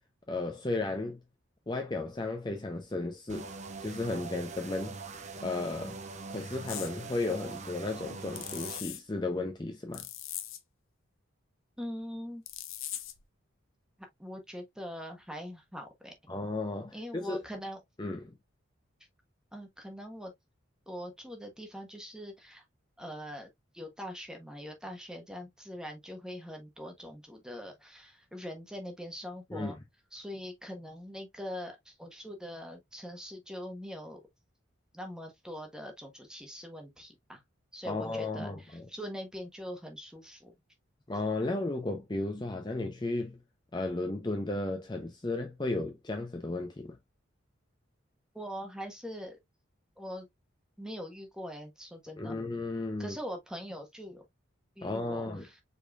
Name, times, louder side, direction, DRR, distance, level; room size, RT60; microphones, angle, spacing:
voice 1, 0.3-1.2 1.7-3.5 3.8-5.0 5.4-6.0 6.3-10.0 16.3-17.4 18.0-18.4 29.5-29.7 37.8-38.9 41.1-43.4 43.7-47.0 52.2-53.2 54.8-55.4, left 2 dB, 20° left, 0.6 m, -34 dB
sound 1, 3.3-8.8, right 3 dB, 35° right, 0.7 m, -43 dB
sound 2, 6.7-6.9 8.4-9.0 9.9-10.6 12.5-13.2, left 12 dB, 75° left, 0.9 m, -40 dB
voice 2, 11.8-12.4 14.2-16.1 16.9-17.8 19.5-20.3 20.9-22.6 23.0-29.8 30.1-34.2 34.9-37.4 37.7-40.5 48.3-49.4 50.0-50.3 50.8-52.3 53.0-54.2 54.8-55.6, equal, 5° right, 1.1 m, -42 dB
5.1 x 4.3 x 2.3 m
head